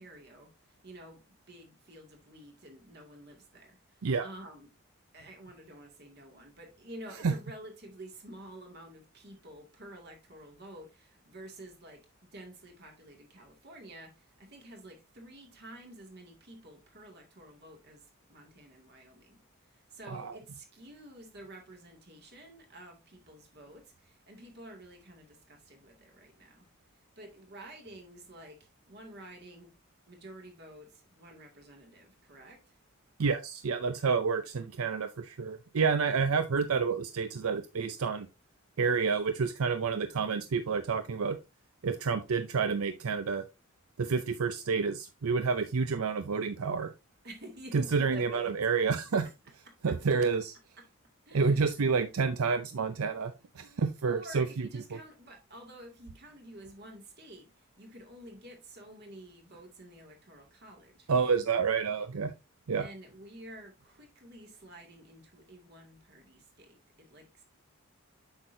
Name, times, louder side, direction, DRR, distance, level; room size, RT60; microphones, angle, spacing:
voice 1, 0.0-4.7 5.1-19.4 19.7-26.7 27.2-29.8 30.1-32.8 47.2-48.6 49.7-49.8 51.3-52.1 54.0-61.1 62.8-67.4, right 1 dB, 50° right, 2.1 m, -50 dB
voice 2, 33.2-38.3 38.8-41.4 41.8-43.4 44.0-46.9 47.7-49.3 49.8-50.5 51.3-55.0 61.1-62.3 62.7-62.9, right 5 dB, 85° right, 0.5 m, -29 dB
7.9 x 6.0 x 2.6 m
head